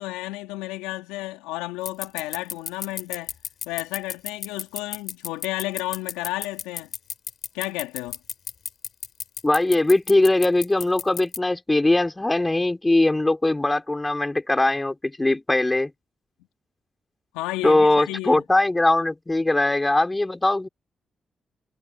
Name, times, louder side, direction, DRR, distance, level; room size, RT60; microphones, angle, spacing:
voice 1, 0.0-3.3 3.6-6.9 7.5-8.2 17.3-18.4, left 18 dB, 90° left, 2.9 m, -32 dB
sound 1, 1.8-11.4, left 8 dB, 70° left, 3.3 m, -31 dB
voice 2, 9.4-15.9 17.6-20.7, left 2 dB, 20° left, 4.8 m, -21 dB
hypercardioid pair, 40°, 0 cm